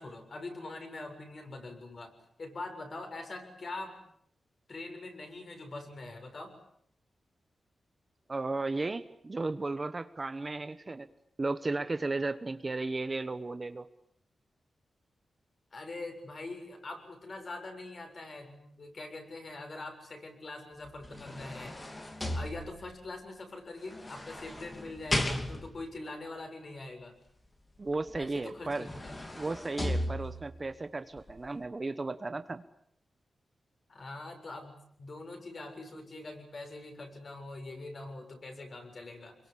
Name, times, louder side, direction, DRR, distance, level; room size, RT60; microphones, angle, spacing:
voice 1, 0.0-2.1 2.4-4.0 4.7-6.6 15.7-21.8 22.3-27.1 28.2-29.3 33.9-34.7 35.0-39.4, left 2 dB, 40° left, 4 dB, 7.2 m, -43 dB
voice 2, 8.3-11.1 11.4-13.8 27.8-28.9 29.4-32.6, right 3 dB, 25° right, 11 dB, 1.1 m, -34 dB
sound 1, 20.8-23.1 23.9-25.9 28.1-28.2 28.6-30.6 31.2-31.3, left 1 dB, 20° left, 3.0 m, -36 dB
28.5 x 23.0 x 8.6 m, 0.69 s
wide cardioid pair, 145°, 0 cm